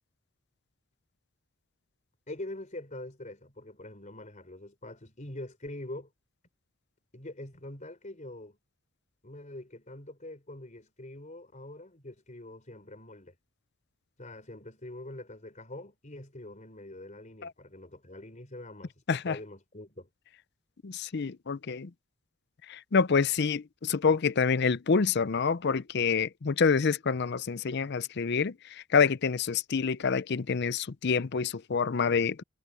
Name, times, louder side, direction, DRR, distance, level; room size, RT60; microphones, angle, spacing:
voice 1, 2.3-6.1 7.1-8.6 9.2-13.3 14.2-20.1, left 1 dB, 35° left, 4.0 m, -44 dB
voice 2, 20.8-21.9 22.7-32.4, left 5 dB, 55° left, 0.5 m, -27 dB
head